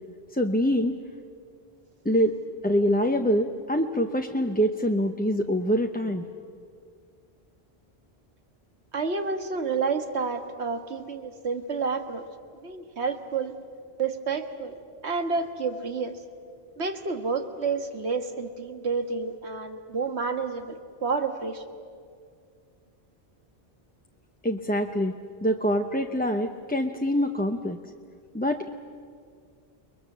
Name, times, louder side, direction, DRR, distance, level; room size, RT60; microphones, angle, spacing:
voice 1, 0.3-1.0 2.0-2.3 2.6-6.3 24.4-25.2 25.4-27.8 28.3-28.7, equal, 10° left, 4 dB, 0.7 m, -25 dB
voice 2, 8.9-12.2 12.6-13.5 14.0-16.2 16.8-21.6, right 4 dB, 90° right, 7 dB, 1.8 m, -30 dB
29.5 x 21.5 x 7.4 m, 2.2 s
omnidirectional pair, 1.1 m